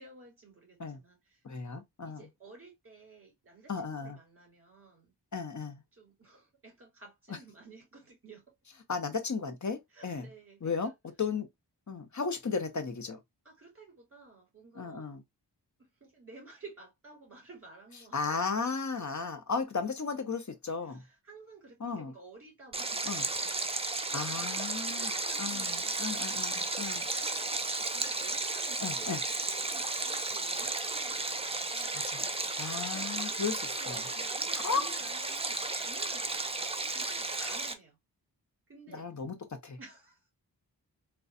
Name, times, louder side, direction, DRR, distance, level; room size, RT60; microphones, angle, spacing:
voice 1, 0.0-1.4 2.0-5.1 5.9-8.5 9.9-10.9 12.2-12.4 13.4-15.1 15.8-18.2 20.8-24.6 24.8-26.2 26.9-27.3 27.6-32.1 32.9-38.0 38.7-39.1 39.8-40.3, right 3 dB, 30° right, 2.5 m, -54 dB
voice 2, 1.4-2.2 3.7-4.2 5.3-5.8 8.9-10.3 10.6-10.9 11.2-11.5 11.9-13.2 14.8-15.2 18.1-21.0 21.8-22.1 23.1-23.3 24.1-25.1 25.4-27.1 28.8-29.2 31.8-32.2 32.6-33.6 33.9-34.0 34.5-34.9 37.4-37.6 38.9-39.4 39.6-39.8, left 5 dB, 45° left, 0.8 m, -35 dB
Stream, 22.7-37.7, right 2 dB, 15° right, 0.4 m, -34 dB
4.0 x 2.3 x 2.4 m
wide cardioid pair, 65°, 42 cm